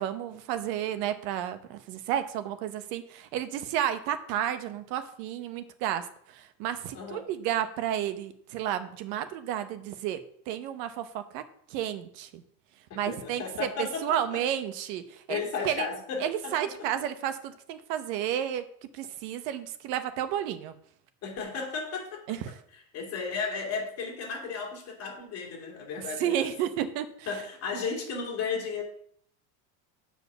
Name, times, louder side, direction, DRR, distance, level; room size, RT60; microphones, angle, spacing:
voice 1, 0.0-11.4 11.7-12.4 13.0-15.9 16.2-18.6 18.9-20.7 22.3-22.5 26.2-27.1, right 10 dB, 80° right, 10 dB, 1.1 m, -32 dB
voice 2, 12.9-14.4 15.3-16.7 21.2-22.4 22.7-26.5 27.3-28.8, left 5 dB, 30° left, -1 dB, 2.4 m, -34 dB
8.3 x 4.9 x 6.8 m, 0.65 s
cardioid pair, 175°, 47 cm